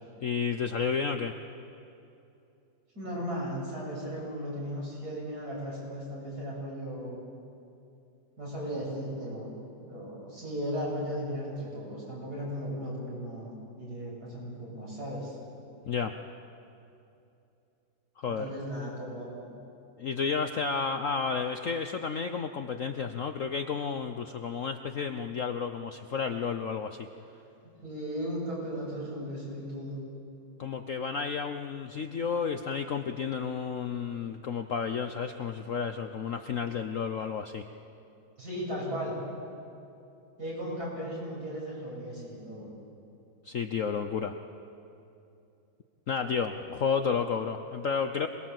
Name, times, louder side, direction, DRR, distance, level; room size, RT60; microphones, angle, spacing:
voice 1, 0.2-1.3 15.9-16.1 18.2-18.5 20.0-27.1 30.6-37.7 43.4-44.3 46.1-48.3, left 6 dB, 55° left, 7 dB, 1.0 m, -31 dB
voice 2, 2.9-7.2 8.4-9.5 9.8-13.5 13.8-15.4 18.3-19.5 27.8-30.0 38.4-39.2 40.4-42.7, equal, 55° right, -4 dB, 8.1 m, -36 dB
27.0 x 20.5 x 7.7 m, 2.7 s
omnidirectional pair, 2.1 m